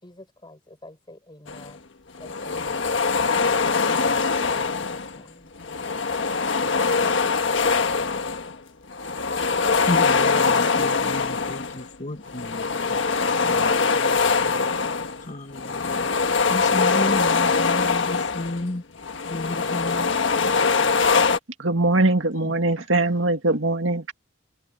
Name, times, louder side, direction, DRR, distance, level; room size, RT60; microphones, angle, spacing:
voice 1, 0.0-1.8 2.2-2.9 3.3-5.5, left 2 dB, 25° left, 5.0 m, -45 dB
sound 1, 1.5-1.7 2.1-5.2 5.6-8.6 8.9-11.9 12.3-18.6 19.0-21.4, left 4 dB, 65° left, 1.5 m, -23 dB
voice 2, 9.9-12.6 13.4-13.7 14.0-14.1 14.4-14.6 15.3-16.0 16.5-18.8 19.3-20.1, left 1 dB, 40° left, 1.4 m, -32 dB
voice 3, 21.6-24.1, right 2 dB, 70° right, 2.2 m, -21 dB
head